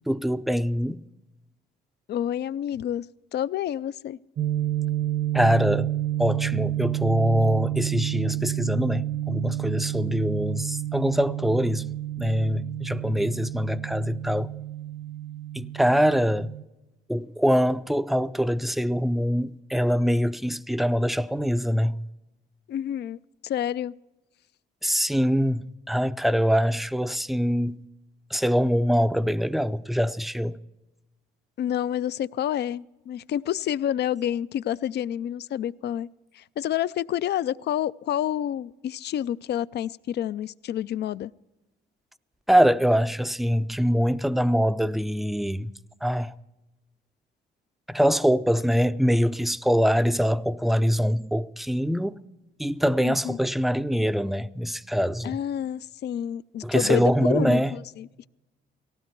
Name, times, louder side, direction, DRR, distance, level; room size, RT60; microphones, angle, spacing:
voice 1, 0.1-1.0 5.3-5.9 6.2-11.9 12.2-14.5 15.5-16.5 17.1-22.0 24.8-27.8 28.3-30.6 42.5-45.7 46.0-46.3 47.9-52.1 52.6-55.4 56.6-57.7, equal, ahead, 0.5 m, -24 dB
voice 2, 2.1-3.1 3.3-4.2 22.7-23.9 31.6-36.1 36.3-41.3 53.0-53.4 55.2-58.3, left 11 dB, 55° left, 0.4 m, -29 dB
sound 1, 4.4-16.6, right 14 dB, 60° right, 0.9 m, -30 dB
18.5 x 16.0 x 4.5 m
cardioid pair, 90°, 20 cm